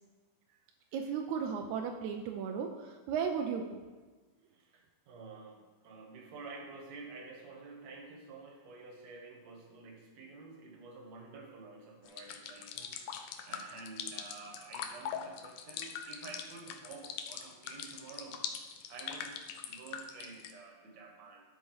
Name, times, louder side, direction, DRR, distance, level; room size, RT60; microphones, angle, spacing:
voice 1, 0.9-3.8, right 6 dB, 80° right, 3 dB, 1.7 m, -35 dB
voice 2, 4.5-21.4, right 3 dB, 60° right, 1 dB, 2.3 m, -50 dB
sound 1, 12.1-20.5, left 8 dB, 75° left, 1.9 m, -42 dB
11.5 x 4.9 x 4.7 m, 1.3 s
omnidirectional pair, 4.0 m